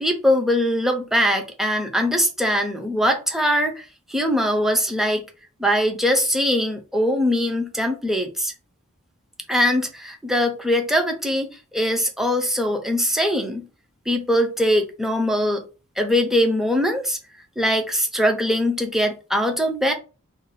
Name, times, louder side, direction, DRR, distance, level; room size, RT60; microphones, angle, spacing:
voice 1, 0.0-5.3 5.6-8.5 9.5-13.7 14.1-15.6 16.0-17.2 17.6-19.9, equal, ahead, 0.4 m, -21 dB
2.5 x 2.1 x 3.9 m
head